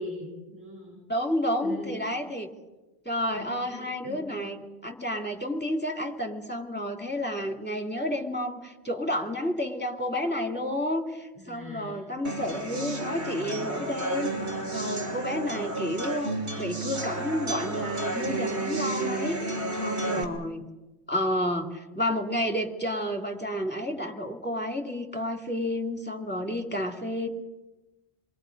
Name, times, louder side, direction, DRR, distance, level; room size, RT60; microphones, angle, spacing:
voice 1, 0.0-1.0 1.6-2.0 3.3-4.2 11.3-12.0 19.7-20.2, left 2 dB, 10° right, -3 dB, 7.2 m, -41 dB
voice 2, 1.1-2.5 3.0-14.3 14.7-19.4 19.8-20.6 21.1-27.3, left 1 dB, 10° left, 3 dB, 2.6 m, -30 dB
sound 1, 12.2-20.2, right 2 dB, 90° right, 2.9 m, -31 dB
28.5 x 22.5 x 5.3 m, 1.1 s
omnidirectional pair, 1.1 m